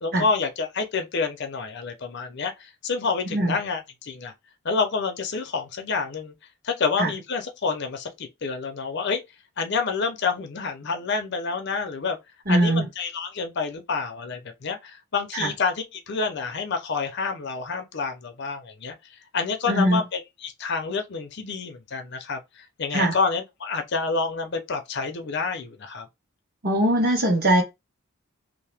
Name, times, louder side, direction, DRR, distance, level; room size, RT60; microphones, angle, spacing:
voice 1, 0.0-4.3 4.6-6.3 6.6-9.2 9.6-12.2 12.5-18.9 19.3-26.1, left 4 dB, 50° left, 0.5 m, -28 dB
voice 2, 12.5-12.8 15.3-15.5 19.7-20.0 22.9-23.1 26.6-27.6, right 1 dB, 45° right, 1.2 m, -21 dB
2.7 x 2.1 x 3.3 m
head